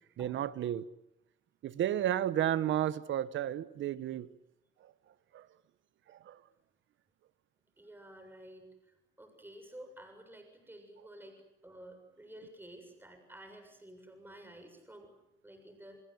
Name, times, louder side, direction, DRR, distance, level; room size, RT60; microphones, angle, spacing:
voice 1, 0.2-0.8 1.6-4.3 5.3-5.5 6.1-6.4, right 11 dB, 75° right, 1.3 m, -32 dB
voice 2, 7.8-15.1 15.4-16.0, right 1 dB, 10° right, 7.2 m, -52 dB
30.0 x 21.5 x 8.0 m
cardioid pair, 90°, 20 cm